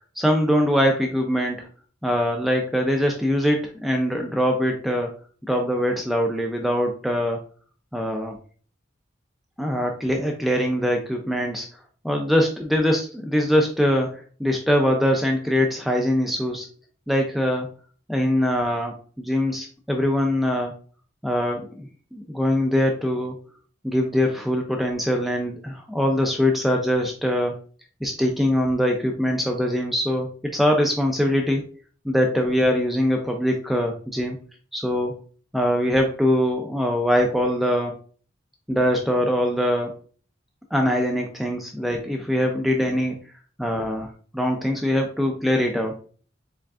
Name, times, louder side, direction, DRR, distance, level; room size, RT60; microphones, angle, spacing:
voice 1, 0.2-1.7 2.0-5.1 5.5-7.4 7.9-8.4 9.6-11.7 12.0-16.7 17.1-17.7 18.1-20.7 21.2-23.4 23.8-27.6 28.0-31.6 32.0-34.4 34.7-35.1 35.5-37.9 38.7-39.9 40.7-43.2 43.6-44.1 44.3-46.0, equal, ahead, 1 dB, 0.4 m, -23 dB
4.7 x 3.5 x 2.4 m, 0.42 s
head